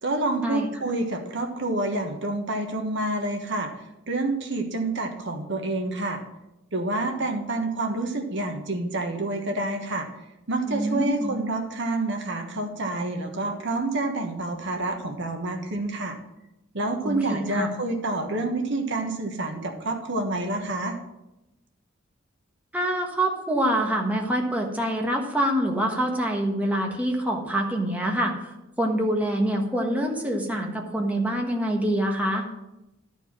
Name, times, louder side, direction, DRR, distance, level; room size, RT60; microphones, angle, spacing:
voice 1, 0.0-6.2 6.7-10.1 10.5-16.2 16.7-21.0, right 2 dB, 65° right, 4 dB, 1.3 m, -28 dB
voice 2, 10.7-11.3 17.0-17.7 22.7-28.3 28.8-32.4, right 1 dB, 5° right, 0 dB, 1.4 m, -25 dB
12.0 x 4.6 x 7.4 m, 0.93 s
head